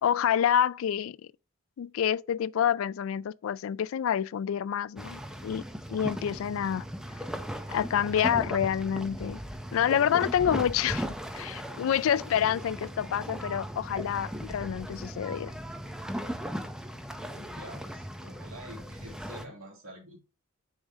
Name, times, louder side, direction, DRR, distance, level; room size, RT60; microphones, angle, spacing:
voice 1, 0.0-1.2 1.8-5.6 5.9-6.8 7.7-9.4 9.7-11.1 11.3-15.5, left 9 dB, 70° left, 0.3 m, -27 dB
sound 1, 5.0-19.4, equal, 5° right, 0.6 m, -38 dB
voice 2, 17.3-20.2, equal, 75° right, 2.5 m, -47 dB
7.2 x 4.9 x 2.7 m
head